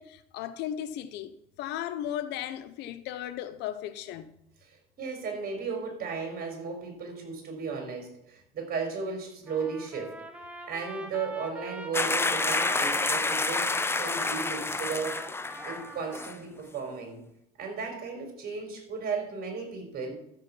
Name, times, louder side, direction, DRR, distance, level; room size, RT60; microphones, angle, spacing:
voice 1, 0.0-4.3, left 11 dB, 90° left, 1.0 m, -36 dB
voice 2, 5.0-10.2 10.7-15.2 15.6-17.2 17.6-20.1, right 5 dB, 60° right, 5.0 m, -35 dB
Trumpet, 9.5-16.3, right 2 dB, 10° right, 1.9 m, -43 dB
sound 1, 11.9-15.9 16.1-16.4, left 3 dB, 15° left, 0.7 m, -28 dB
12.5 x 8.4 x 6.2 m
cardioid pair, 110°, 17 cm